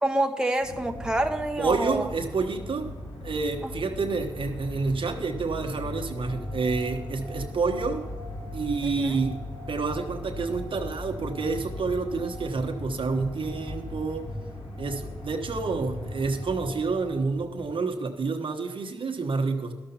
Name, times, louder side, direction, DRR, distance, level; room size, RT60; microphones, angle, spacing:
voice 1, 0.0-2.1 8.8-9.1, right 1 dB, 10° right, 5 dB, 0.9 m, -27 dB
sound 1, 0.6-16.6, left 1 dB, 75° left, 2.5 m, -39 dB
voice 2, 1.6-2.9 3.2-8.0 8.5-14.3 14.8-19.7, right 4 dB, 65° right, 3 dB, 1.1 m, -29 dB
sound 2, 5.8-17.7, left 1 dB, 45° left, 3.5 m, -42 dB
12.0 x 6.9 x 5.7 m, 1.3 s
supercardioid pair, 40°, 10 cm